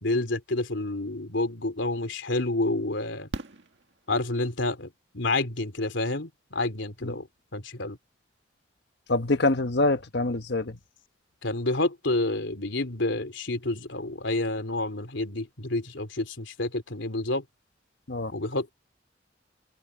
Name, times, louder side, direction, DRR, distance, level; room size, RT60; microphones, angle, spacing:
voice 1, 0.0-3.3 4.1-7.3 7.5-8.0 11.4-17.4 18.3-18.7, left 2 dB, 80° left, 3.2 m, -29 dB
Fireworks, 3.3-4.6 6.4-6.5 6.7-6.8, right 2 dB, 70° right, 1.9 m, -40 dB
voice 2, 9.1-10.8 18.1-18.3, left 2 dB, 60° left, 1.3 m, -25 dB
head